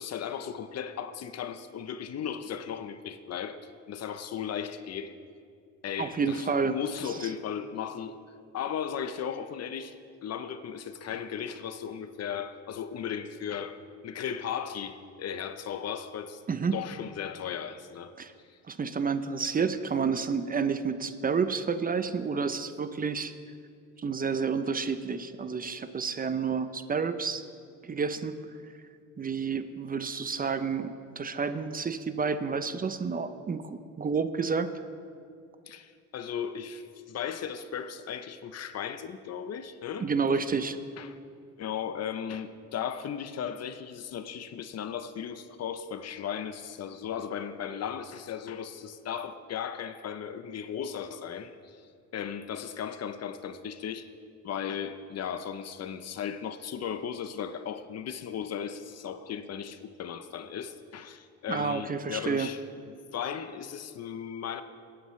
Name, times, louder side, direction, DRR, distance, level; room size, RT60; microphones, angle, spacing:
voice 1, 0.0-3.6 3.9-5.1 5.8-8.1 8.5-16.4 16.7-18.1 18.5-18.6 35.7-40.1 41.0-41.2 41.6-54.1 54.4-62.6 63.1-64.6, left 8 dB, 55° left, 11 dB, 0.7 m, -36 dB
voice 2, 6.0-6.8 16.5-16.8 18.2-18.3 18.7-23.3 24.0-27.4 27.8-28.4 29.2-34.7 40.0-40.8 61.5-62.5, right 5 dB, 30° right, 11 dB, 0.6 m, -30 dB
17.5 x 8.6 x 3.1 m, 2.3 s
cardioid pair, 90°, 30 cm